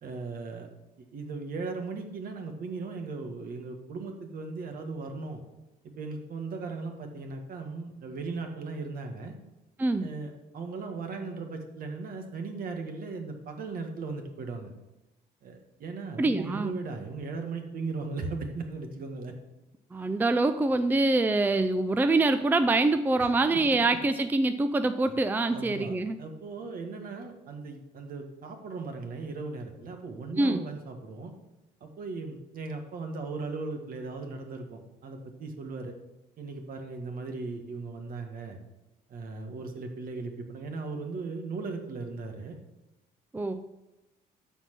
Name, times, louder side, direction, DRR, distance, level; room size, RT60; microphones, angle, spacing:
voice 1, 0.0-0.7 1.1-5.4 6.0-9.4 10.0-14.7 15.4-19.3 20.0-20.2 23.2-23.3 23.5-23.6 25.5-31.3 31.8-35.9 36.4-38.6 39.1-42.6, right 3 dB, 60° right, 5 dB, 1.8 m, -37 dB
voice 2, 16.2-16.7 19.9-26.2 30.4-30.7 43.3-43.6, right 2 dB, 10° right, 10 dB, 0.5 m, -25 dB
13.0 x 4.6 x 6.1 m, 1.0 s
cardioid pair, 110°, 17 cm